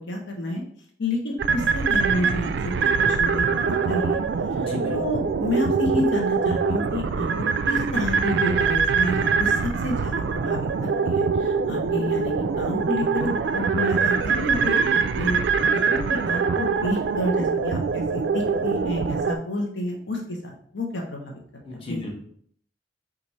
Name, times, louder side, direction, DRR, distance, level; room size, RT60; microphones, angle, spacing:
voice 1, 0.1-0.6 1.0-2.7 3.0-4.2 4.9-21.4 21.9-22.1, left 1 dB, 85° left, 1 dB, 0.8 m, -30 dB
sound 1, 1.4-19.4, right 5 dB, 70° right, 0.3 m, -23 dB
voice 2, 4.6-5.0 21.7-22.1, left 1 dB, 30° left, -1 dB, 1.0 m, -32 dB
4.6 x 2.5 x 4.1 m, 0.62 s
head